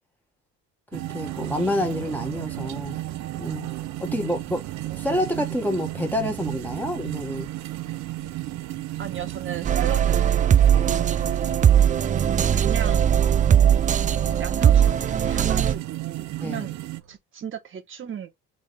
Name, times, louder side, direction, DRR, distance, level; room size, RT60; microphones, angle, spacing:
voice 1, 0.9-3.0 3.4-3.7 4.0-4.6 4.9-7.5 10.7-10.9 16.4-16.7, left 1 dB, 5° left, 1.2 m, -28 dB
sound 1, 0.9-17.0, right 17 dB, 65° right, 0.6 m, -34 dB
sound 2, 0.9-17.2, right 10 dB, 80° right, 1.0 m, -43 dB
voice 2, 9.0-11.3 12.5-13.2 14.4-16.8 17.1-18.3, right 8 dB, 40° right, 1.2 m, -36 dB
sound 3, 9.6-15.7, right 9 dB, 25° right, 0.3 m, -19 dB
3.6 x 3.5 x 3.4 m
cardioid pair, 90°, 30 cm